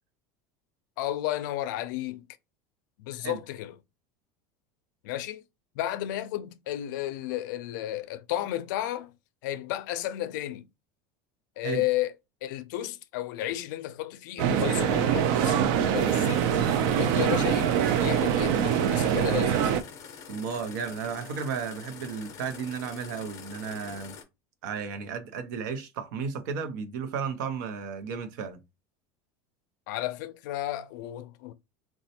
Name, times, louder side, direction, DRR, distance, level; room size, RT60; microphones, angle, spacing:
voice 1, 1.0-2.2 3.0-3.7 5.0-5.4 5.8-9.1 9.4-10.7 11.6-12.1 12.4-16.5 16.8-17.7 18.0-19.7 29.9-31.5, left 14 dB, 75° left, 0.4 m, -33 dB
sound 1, 14.4-19.8, right 9 dB, 50° right, 0.4 m, -24 dB
sound 2, 16.1-24.2, left 6 dB, 30° left, 0.6 m, -45 dB
voice 2, 20.3-24.1 24.6-28.6, right 6 dB, 80° right, 0.7 m, -34 dB
4.1 x 2.2 x 2.7 m
cardioid pair, 180°, 10 cm